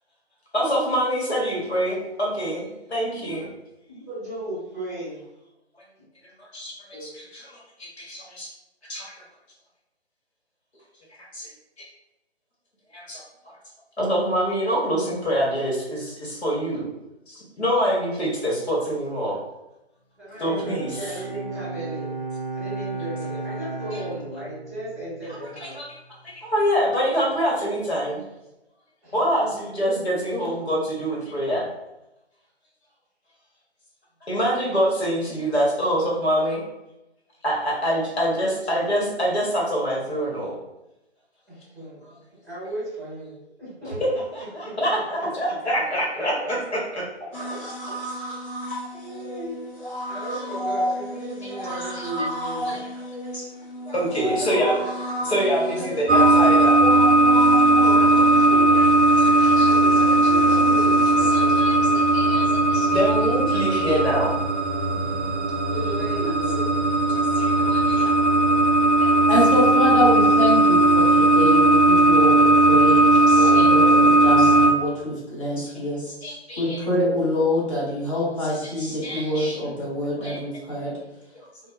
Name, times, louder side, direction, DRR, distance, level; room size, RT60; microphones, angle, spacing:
voice 1, 0.5-3.5 6.4-6.7 7.0-8.5 8.9-9.1 11.2-11.5 12.9-13.2 14.0-16.9 17.3-19.4 20.4-21.2 25.4-26.0 26.2-28.2 29.1-31.7 34.3-36.6 37.4-40.5 43.9-47.0 51.7-52.1 52.6-53.0 53.3-53.4 53.9-54.7 55.2-56.8 59.2-59.7 61.3-64.4 67.3-68.1 69.0-69.1 73.3-74.5 75.6-75.7 76.0-77.1 78.4-79.6 80.2-80.4, equal, 70° left, -4 dB, 1.0 m, -26 dB
voice 2, 3.9-5.2 6.9-7.1 20.2-22.2 22.5-25.8 29.0-29.5 41.5-44.2 44.6-45.5 47.2-48.1 48.9-49.6 50.1-52.9 54.2-54.8 55.7-56.2 57.6-58.9 59.6-62.1 65.7-66.7, right 1 dB, ahead, -16 dB, 0.9 m, -35 dB
Bowed string instrument, 20.3-25.9, right 3 dB, 30° right, 0.5 m, -35 dB
sound 1, 47.3-62.6 64.1-64.2, equal, 55° left, 1.0 m, -33 dB
sound 2, 56.1-74.7, right 2 dB, 80° right, 0.5 m, -17 dB
voice 3, 69.3-76.0 76.6-80.9, left 1 dB, 30° left, -7 dB, 0.8 m, -25 dB
2.7 x 2.1 x 2.2 m, 0.92 s
figure-of-eight pair, 145°, 34 cm